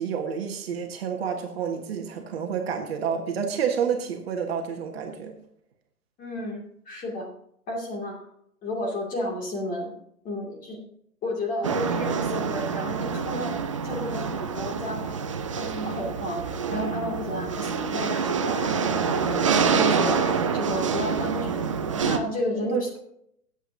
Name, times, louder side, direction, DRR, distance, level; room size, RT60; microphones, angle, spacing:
voice 1, 0.0-5.3 22.7-22.8, right 7 dB, 40° right, 4 dB, 1.5 m, -29 dB
voice 2, 6.2-7.3 7.7-8.3 8.6-9.9 10.2-10.8 11.2-13.5 13.8-15.2 15.6-16.4 16.7-19.4 19.7-21.6 21.9-22.9, left 1 dB, 20° left, 0 dB, 2.5 m, -32 dB
sound 1, 11.6-22.2, right 6 dB, 25° right, 0.4 m, -26 dB
17.5 x 8.1 x 2.7 m, 0.71 s
figure-of-eight pair, 120°, 45 cm